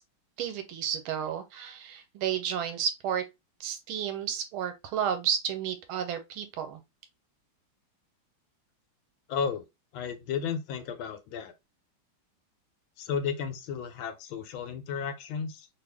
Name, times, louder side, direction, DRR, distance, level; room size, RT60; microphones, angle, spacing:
voice 1, 0.4-3.2 3.6-6.8, right 8 dB, 90° right, 1.5 m, -32 dB
voice 2, 9.3-9.6 9.9-11.5 13.0-15.7, left 6 dB, 75° left, 1.4 m, -33 dB
3.2 x 2.5 x 3.4 m
omnidirectional pair, 2.3 m